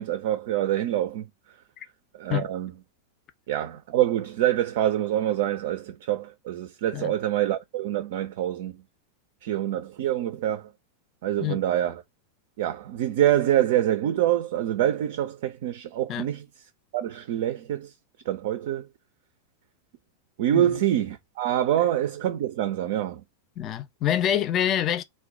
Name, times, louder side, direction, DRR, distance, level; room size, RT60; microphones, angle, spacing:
voice 1, 0.0-1.6 2.1-2.7 3.5-8.8 9.4-10.7 11.2-12.0 12.6-16.5 16.9-17.9 18.3-18.9 20.4-23.2, right 12 dB, 55° right, 0.3 m, -26 dB
voice 2, 23.6-25.0, left 10 dB, 30° left, 0.4 m, -26 dB
2.2 x 2.1 x 3.7 m
figure-of-eight pair, 90°, 0 cm